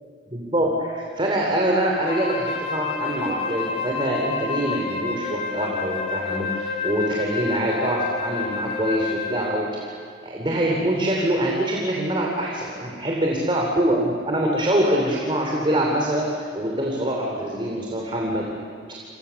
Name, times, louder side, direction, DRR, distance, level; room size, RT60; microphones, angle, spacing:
voice 1, 0.3-9.9 10.2-18.4, right 1 dB, 30° right, -1 dB, 3.1 m, -24 dB
Wind instrument woodwind instrument, 2.0-9.7, left 5 dB, 35° left, 3.4 m, -29 dB
29.0 x 27.0 x 7.0 m, 2.2 s
head